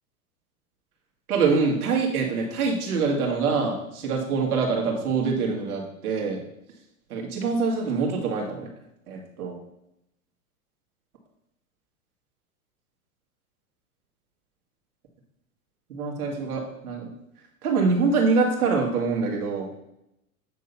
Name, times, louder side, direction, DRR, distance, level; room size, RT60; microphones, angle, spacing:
voice 1, 1.3-6.4 7.1-8.7 9.1-9.6 15.9-17.1 17.6-19.7, right 4 dB, 85° right, 0 dB, 2.4 m, -25 dB
9.2 x 3.8 x 5.7 m, 0.83 s
hypercardioid pair, 120°, 43 cm